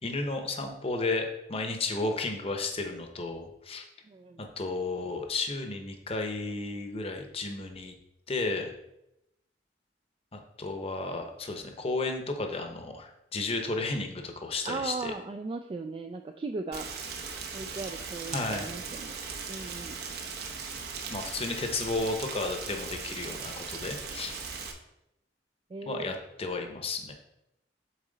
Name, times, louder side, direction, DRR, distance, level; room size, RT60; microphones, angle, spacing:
voice 1, 0.0-3.8 4.4-7.9 8.3-8.7 10.3-15.1 18.3-18.7 21.1-24.3 25.8-27.1, left 3 dB, 35° left, 4 dB, 0.8 m, -33 dB
voice 2, 4.0-4.5 14.6-16.9 17.5-19.2 19.5-20.0 25.7-26.1, right 3 dB, 30° right, 5 dB, 0.3 m, -37 dB
Rain, 16.7-24.7, right 5 dB, 65° right, 0.9 m, -39 dB
7.4 x 4.1 x 3.9 m, 0.87 s
head